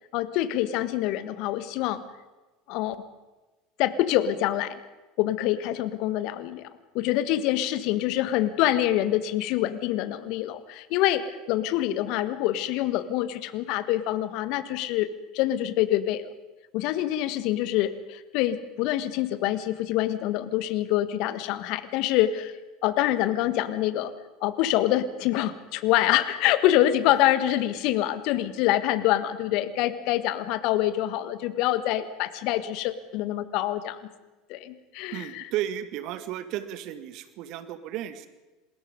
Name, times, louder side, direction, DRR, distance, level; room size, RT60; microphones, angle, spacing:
voice 1, 0.1-2.0 2.7-3.0 3.8-4.8 5.2-6.7 6.9-15.1 15.3-16.3 16.7-24.1 24.4-34.0 34.5-35.4, left 13 dB, 55° left, 14 dB, 1.6 m, -26 dB
voice 2, 35.1-38.3, right 12 dB, 55° right, 12 dB, 2.0 m, -34 dB
28.0 x 21.0 x 5.3 m, 1.2 s
figure-of-eight pair, 75°, 0 cm